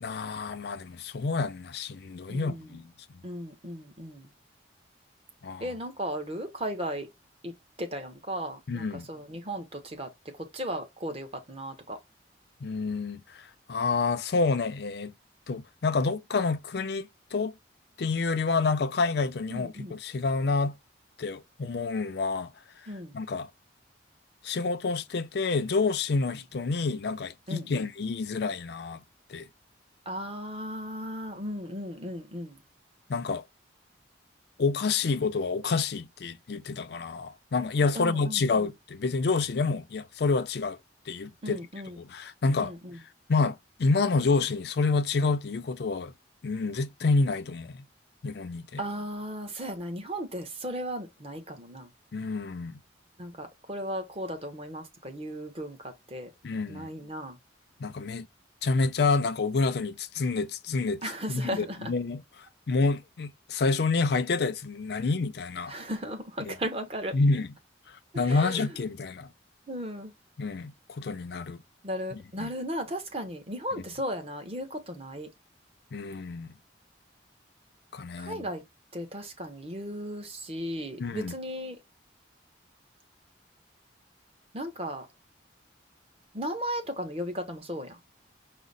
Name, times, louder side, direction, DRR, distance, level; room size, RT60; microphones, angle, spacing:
voice 1, 0.0-2.9 5.4-5.7 8.7-9.1 12.6-15.1 15.5-17.5 18.0-20.8 21.2-22.5 23.1-23.5 24.4-29.0 29.3-29.5 33.1-33.4 34.6-40.8 41.1-41.6 42.0-42.7 43.3-46.1 46.4-47.8 48.2-48.8 52.1-52.8 56.4-56.9 57.8-58.3 58.6-61.0 61.3-65.7 66.5-66.6 67.1-67.5 67.9-69.3 70.4-71.6 72.1-72.5 73.7-73.8 75.9-76.5 77.9-78.5 81.0-81.3, left 4 dB, 55° left, 0.4 m, -28 dB
voice 2, 2.3-2.7 3.2-4.3 5.6-7.1 7.4-7.5 7.8-10.1 10.4-12.0 19.5-19.9 22.9-23.1 27.5-27.9 30.1-32.6 37.9-38.7 41.4-42.0 42.6-43.0 48.8-51.9 53.2-56.3 56.7-57.4 61.0-61.9 65.7-67.1 68.1-68.6 69.7-70.1 71.8-75.3 78.2-78.6 78.9-81.8 84.5-85.1 86.3-88.0, equal, 30° right, 0.9 m, -36 dB
4.9 x 2.0 x 4.0 m
head